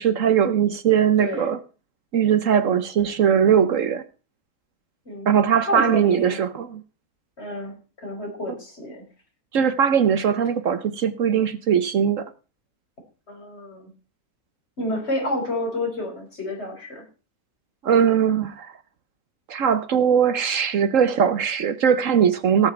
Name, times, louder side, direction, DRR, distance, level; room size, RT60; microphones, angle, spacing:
voice 1, 0.0-1.6 2.1-4.0 5.3-6.8 9.5-12.3 17.8-18.7 19.5-22.7, right 8 dB, 65° right, 1.2 m, -20 dB
voice 2, 1.2-1.5 5.0-5.3 5.7-6.4 7.4-9.0 13.3-13.9 14.8-17.0, left 1 dB, 45° left, 4.9 m, -29 dB
18.0 x 7.4 x 4.4 m
omnidirectional pair, 1.5 m